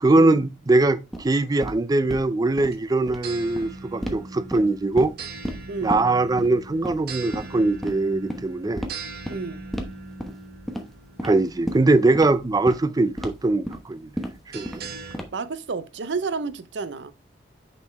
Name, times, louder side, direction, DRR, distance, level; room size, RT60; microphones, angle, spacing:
voice 1, 0.0-5.1 5.8-8.8 11.2-14.1 14.5-14.7, right 2 dB, 20° right, 0.4 m, -21 dB
sound 1, 1.1-1.2 1.6-1.7 2.1-2.3 2.6-2.7 3.0-3.2 3.5-3.7 4.0-4.2 4.5-5.1 5.4-5.6 5.9-6.0 6.4-6.5 6.8-7.0 7.3-7.4 7.8-7.9 8.3-8.4 8.8-8.9 9.2-9.4 9.7-9.9 10.2-10.4 10.7-10.8 11.2-11.3 11.7-11.8 12.1-12.3 12.7-12.8 13.2-13.3 13.6-13.8 14.2-14.3 14.6-14.9 15.1-15.5, equal, ahead, 1.0 m, -31 dB
sound 2, 2.4-15.2, right 3 dB, 60° right, 0.9 m, -41 dB
voice 2, 5.7-6.0 9.3-9.6 15.3-17.1, right 4 dB, 90° right, 0.6 m, -30 dB
6.2 x 5.3 x 3.3 m
head